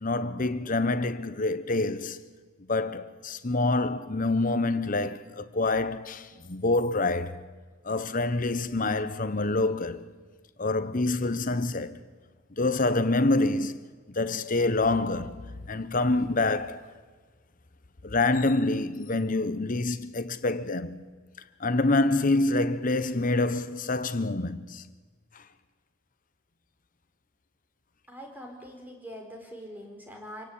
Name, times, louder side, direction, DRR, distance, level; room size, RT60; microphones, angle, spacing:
voice 1, 0.0-2.2 2.7-7.5 7.8-10.1 10.6-12.0 12.5-13.8 14.1-16.9 18.0-21.0 21.6-24.8 25.3-25.4, left 2 dB, 40° left, 1.0 m, -26 dB
voice 2, 28.1-30.4, equal, 10° right, 4.4 m, -43 dB
26.5 x 17.0 x 8.7 m
head